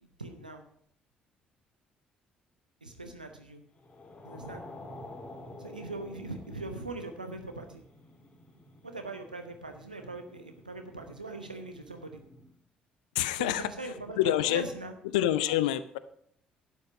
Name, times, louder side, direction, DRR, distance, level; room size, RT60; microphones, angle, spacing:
voice 1, 0.0-0.6 2.8-3.6 4.2-4.6 5.6-7.8 8.8-12.2 13.3-14.9, right 2 dB, 90° right, 5 dB, 0.9 m, -41 dB
sound 1, 3.8-12.5, left 2 dB, 30° left, 3.3 m, -50 dB
voice 2, 13.1-13.7 14.2-14.6 15.1-16.0, left 12 dB, 75° left, 14 dB, 0.5 m, -26 dB
12.0 x 8.4 x 5.0 m, 0.66 s
figure-of-eight pair, 45°, 4 cm